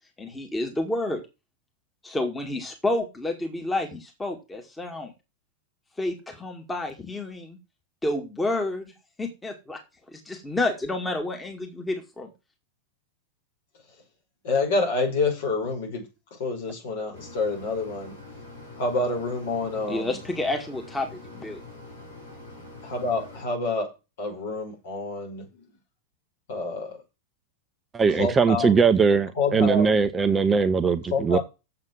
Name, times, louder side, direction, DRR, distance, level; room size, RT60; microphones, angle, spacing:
voice 1, 0.2-1.2 2.0-5.1 6.0-7.6 8.0-8.9 9.2-9.8 10.1-12.3 19.9-21.6, left 2 dB, 10° left, 2.1 m, -29 dB
voice 2, 14.4-16.1 16.4-18.2 18.8-20.1 22.8-23.9 24.2-25.4 26.5-27.0 28.1-28.7 29.3-29.9 31.1-31.4, left 3 dB, 55° left, 5.5 m, -27 dB
Mechanisms, 17.1-23.4, left 3 dB, 75° left, 4.5 m, -44 dB
voice 3, 27.9-31.4, right 5 dB, 15° right, 0.8 m, -20 dB
7.8 x 7.4 x 7.6 m
figure-of-eight pair, 90°, 0 cm